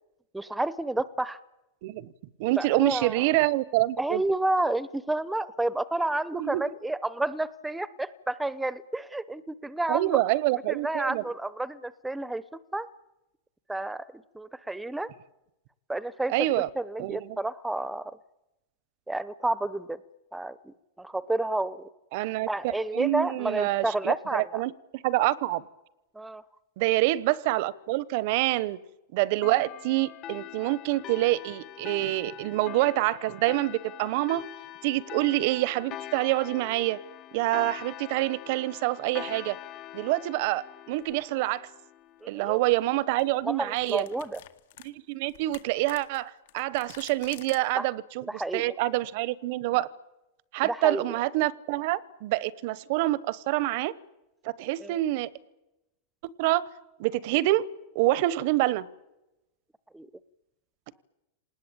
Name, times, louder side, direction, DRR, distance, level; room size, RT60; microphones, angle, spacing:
voice 1, 0.3-1.4 2.6-3.2 4.0-10.2 10.7-12.4 12.7-12.9 13.7-14.1 14.3-15.1 15.9-16.3 16.8-18.1 19.1-20.0 20.3-21.8 22.5-24.6 26.1-26.4 42.2-42.6 43.4-44.4 47.7-47.9 48.3-48.7 50.6-51.2 54.8-55.0 59.9-60.1, right 2 dB, 5° right, 0.8 m, -30 dB
voice 2, 1.8-2.1 2.4-4.2 6.3-6.6 9.9-11.2 16.3-16.7 17.0-17.4 22.1-25.6 26.8-28.8 29.1-34.4 34.8-37.0 37.3-39.6 39.9-41.7 42.3-44.1 44.8-49.9 50.5-53.9 54.4-55.3 56.4-56.7 57.0-57.7 57.9-58.9, right 17 dB, 60° right, 1.0 m, -26 dB
sound 1, 29.4-42.5, left 13 dB, 40° left, 1.1 m, -43 dB
sound 2, 41.0-41.2 42.7-42.9 43.2-43.3 43.8-47.6, left 13 dB, 75° left, 2.0 m, -49 dB
27.0 x 19.5 x 8.8 m
supercardioid pair, 130°, 0 cm